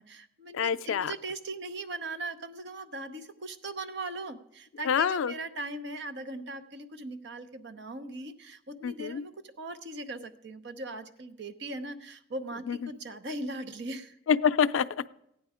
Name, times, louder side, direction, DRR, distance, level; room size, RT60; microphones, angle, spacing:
voice 1, 0.0-14.2, right 2 dB, 60° right, 10 dB, 0.8 m, -39 dB
voice 2, 0.5-1.1 4.9-5.3 8.8-9.2 12.7-12.9 14.3-15.2, left 7 dB, 85° left, 14 dB, 0.4 m, -27 dB
15.0 x 9.4 x 4.9 m, 0.79 s
head